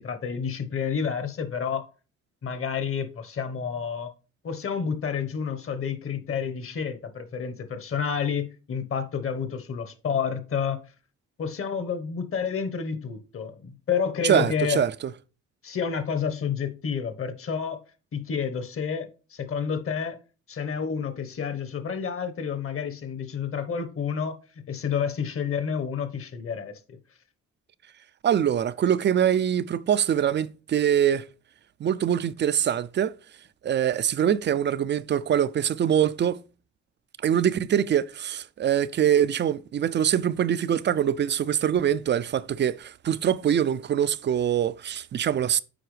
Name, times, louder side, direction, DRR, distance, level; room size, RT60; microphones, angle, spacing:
voice 1, 0.0-1.9 2.4-4.1 4.4-10.8 11.4-14.8 15.6-17.8 18.1-20.2 20.5-24.3 24.7-27.0, left 6 dB, 45° left, 1.1 m, -29 dB
voice 2, 14.2-14.9 28.2-31.3 31.8-33.1 33.6-36.4 37.2-45.6, right 9 dB, 40° right, 0.4 m, -24 dB
7.7 x 4.7 x 3.2 m
cardioid pair, 90°, 30 cm